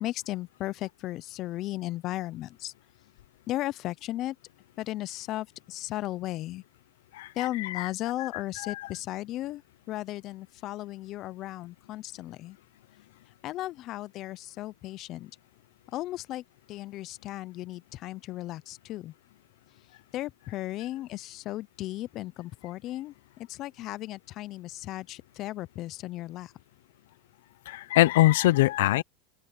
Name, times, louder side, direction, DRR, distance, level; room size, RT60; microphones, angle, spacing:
voice 1, 0.0-2.7 3.5-4.4 4.8-6.6 7.4-9.6 9.9-12.6 13.4-15.3 15.9-19.1 20.1-26.5, left 15 dB, 45° left, 0.7 m, -35 dB
voice 2, 7.1-7.9 8.2-8.3 8.6-8.9 27.7-29.0, left 17 dB, 80° left, 0.6 m, -23 dB
open air
supercardioid pair, 120°, 0 cm